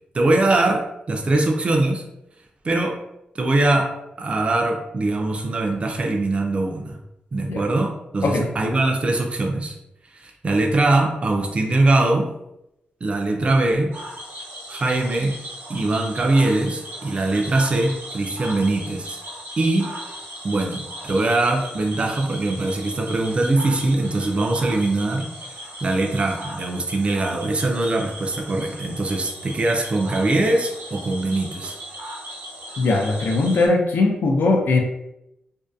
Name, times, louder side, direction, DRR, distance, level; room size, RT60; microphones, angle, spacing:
voice 1, 0.1-2.1 2.6-3.0 3.4-7.0 7.3-9.7 10.1-12.3 13.0-14.0 14.7-15.4 15.7-19.2 19.6-19.9 20.4-31.8, right 2 dB, 35° right, 1 dB, 0.4 m, -22 dB
Cricket / Frog, 13.9-33.7, equal, 80° right, 0.7 m, -37 dB
voice 2, 32.8-34.8, left 3 dB, 80° left, 2 dB, 0.4 m, -19 dB
2.6 x 2.1 x 2.3 m, 0.86 s
wide cardioid pair, 140°, 3 cm